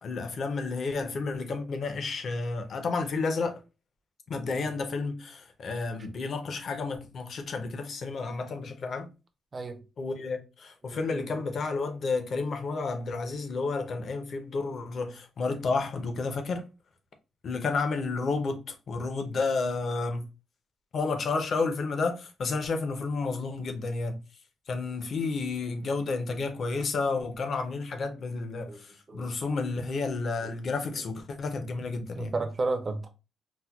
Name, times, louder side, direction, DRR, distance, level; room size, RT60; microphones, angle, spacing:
voice 1, 0.0-3.6 4.3-9.1 10.0-16.6 17.4-20.3 20.9-24.2 24.7-32.3, left 4 dB, 40° left, 0.5 m, -31 dB
voice 2, 9.5-9.8 10.8-11.5 28.7-29.3 30.4-30.6 32.1-33.1, right 3 dB, 25° right, 0.4 m, -34 dB
4.1 x 2.1 x 2.2 m
wide cardioid pair, 180°, 0 cm